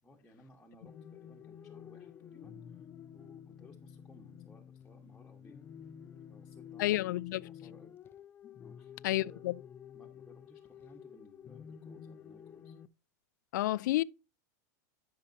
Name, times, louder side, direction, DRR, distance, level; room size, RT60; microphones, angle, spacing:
voice 1, 0.0-5.6 6.0-6.9 7.3-7.9 8.6-9.6 9.9-12.7, left 1 dB, 5° left, 1.4 m, -60 dB
sound 1, 0.9-12.9, left 8 dB, 20° left, 0.6 m, -51 dB
voice 2, 6.8-7.4 9.0-9.5 13.5-14.0, left 16 dB, 80° left, 0.4 m, -30 dB
14.0 x 6.8 x 2.7 m
supercardioid pair, 145°, 10 cm